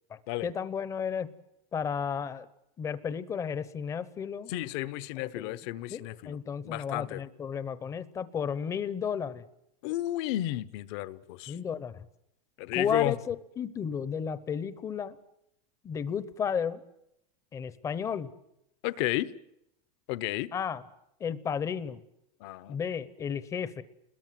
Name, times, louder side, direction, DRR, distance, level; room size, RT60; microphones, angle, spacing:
voice 1, 0.1-1.3 1.7-2.5 2.8-4.5 5.2-5.6 5.9-9.4 11.5-12.0 12.7-15.2 15.8-16.8 17.5-18.3 20.5-20.8 21.2-22.0 22.7-23.8, left 7 dB, 15° left, 0.9 m, -33 dB
voice 2, 4.5-6.4 6.6-7.2 9.8-11.5 12.6-13.1 18.8-19.3 20.1-20.5 22.4-22.8, left 16 dB, 45° left, 1.0 m, -32 dB
30.0 x 21.5 x 7.7 m
supercardioid pair, 170°, 19 cm